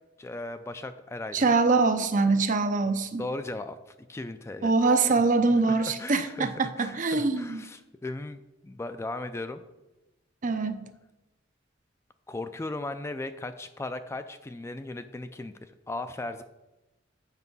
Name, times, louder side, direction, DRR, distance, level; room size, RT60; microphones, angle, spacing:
voice 1, 0.2-1.6 2.8-4.7 5.6-6.5 6.8-9.6 12.3-16.4, left 2 dB, 15° left, 10 dB, 0.3 m, -37 dB
voice 2, 1.3-3.2 4.6-7.6 10.4-10.8, right 3 dB, 45° right, 9 dB, 0.7 m, -24 dB
8.2 x 5.7 x 5.4 m, 1.0 s
head